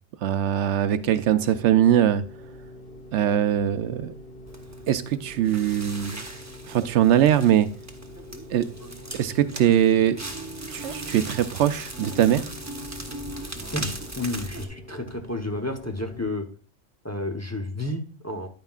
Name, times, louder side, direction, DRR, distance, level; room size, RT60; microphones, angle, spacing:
voice 1, 0.2-2.2 3.1-4.1 4.9-6.3 6.7-7.7 8.5-8.7 9.2-10.2 10.7-12.5, right 10 dB, 75° right, 12 dB, 0.9 m, -21 dB
sound 1, 0.8-16.3, left 1 dB, 55° left, 2.3 m, -45 dB
Crackle, 4.5-14.6, right 2 dB, 15° right, 0.8 m, -38 dB
voice 2, 13.7-16.5 17.0-18.5, left 1 dB, 15° left, 3 dB, 0.7 m, -31 dB
10.5 x 9.2 x 2.4 m, 0.38 s
omnidirectional pair, 1.2 m